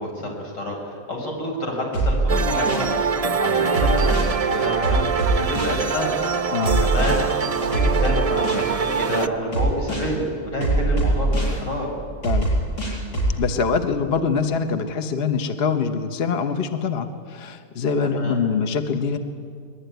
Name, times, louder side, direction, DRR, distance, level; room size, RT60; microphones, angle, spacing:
voice 1, 0.0-6.1 6.8-7.2 7.6-11.9 18.1-18.4, equal, 85° left, 0 dB, 6.2 m, -28 dB
sound 1, 1.9-2.9 3.7-4.3 4.8-5.8 6.6-7.1 7.7-8.7 9.5-10.1 10.6-11.6 12.2-13.3, right 2 dB, 70° left, 7.2 m, -22 dB
sound 2, 2.3-9.3, right 6 dB, 40° right, 0.5 m, -24 dB
voice 2, 6.5-6.8 12.2-12.5 13.4-19.2, left 5 dB, 40° left, 7 dB, 1.2 m, -24 dB
23.0 x 21.5 x 9.3 m, 2.2 s
omnidirectional pair, 1.8 m